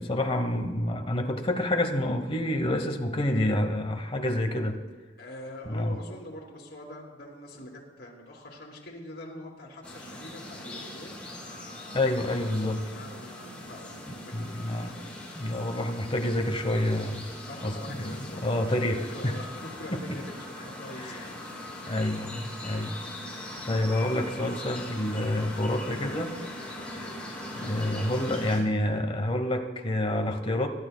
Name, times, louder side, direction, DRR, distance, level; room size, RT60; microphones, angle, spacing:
voice 1, 0.0-4.8 5.7-6.0 11.9-12.8 14.3-15.0 15.4-17.3 17.6-19.3 19.9-20.0 21.0-21.3 21.9-23.0 23.6-26.4 27.6-30.7, left 1 dB, 30° left, 4 dB, 1.0 m, -28 dB
voice 2, 5.2-11.1 12.9-15.1 17.4-18.7 19.1-21.8 26.8-27.3, left 1 dB, 60° left, -2 dB, 3.1 m, -44 dB
sound 1, 9.8-28.6, left 1 dB, 5° left, 4.3 m, -41 dB
26.0 x 12.5 x 2.2 m, 1.3 s
head